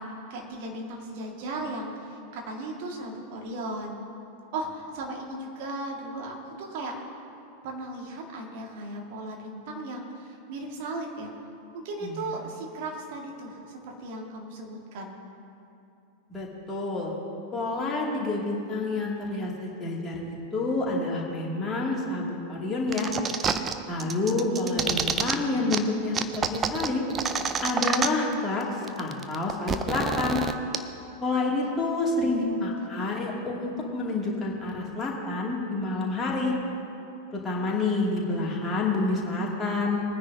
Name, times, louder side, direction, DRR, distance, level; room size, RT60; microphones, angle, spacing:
voice 1, 0.0-4.0 4.5-7.0 7.6-11.3 11.7-15.2 24.3-24.9 32.2-33.2, right 2 dB, 50° right, 0 dB, 2.0 m, -37 dB
voice 2, 16.3-17.1 17.5-23.1 23.9-27.0 27.6-30.4 31.2-36.5 37.4-40.0, left 2 dB, 15° left, -4 dB, 2.5 m, -28 dB
sound 1, 22.9-23.7 24.0-25.3 25.7-25.8 26.1-28.3 28.6-28.7 28.9-30.8, right 6 dB, 25° right, 0.6 m, -27 dB
21.0 x 9.9 x 2.8 m, 2.8 s
figure-of-eight pair, 90°, 0 cm